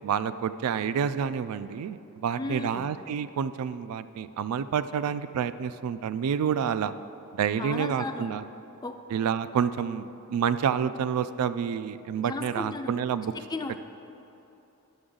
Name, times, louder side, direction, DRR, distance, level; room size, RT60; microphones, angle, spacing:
voice 1, 0.0-6.9 7.3-8.4 9.1-13.3, right 7 dB, 85° right, 13 dB, 0.3 m, -28 dB
voice 2, 2.3-2.9 7.6-8.3 8.8-9.0 12.2-13.0 13.3-13.8, left 3 dB, 20° left, 6 dB, 0.3 m, -35 dB
9.6 x 6.9 x 3.8 m, 3.0 s
head